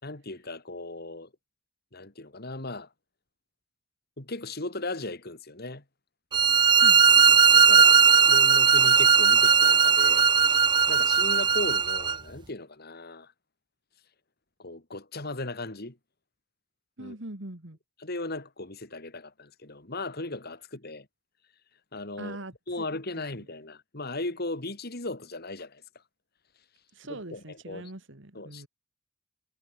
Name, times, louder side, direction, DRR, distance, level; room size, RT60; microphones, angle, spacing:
voice 1, 0.0-1.3 1.9-2.9 4.2-5.8 7.3-10.3 10.9-13.3 14.6-16.0 17.0-17.1 18.0-21.1 21.9-22.4 22.7-25.8 27.1-27.9 28.3-28.7, left 2 dB, 50° left, 3.0 m, -37 dB
sound 1, 6.3-12.2, right 6 dB, 25° right, 0.5 m, -18 dB
voice 2, 17.0-17.8 22.2-22.9 23.4-23.5 26.9-28.7, right 1 dB, 65° right, 2.4 m, -42 dB
head